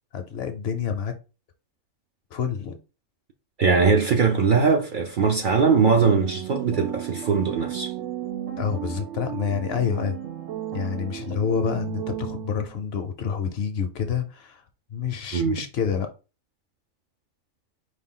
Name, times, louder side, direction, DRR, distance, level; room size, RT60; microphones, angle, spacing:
voice 1, 0.1-1.1 2.3-2.8 8.6-10.2 10.7-14.6 14.9-16.1, left 7 dB, 65° left, 0.8 m, -28 dB
voice 2, 3.6-7.9 15.3-15.6, right 5 dB, 55° right, 0.5 m, -21 dB
sound 1, 5.5-12.8, right 11 dB, 90° right, 1.0 m, -34 dB
5.0 x 2.3 x 3.7 m
omnidirectional pair, 1.3 m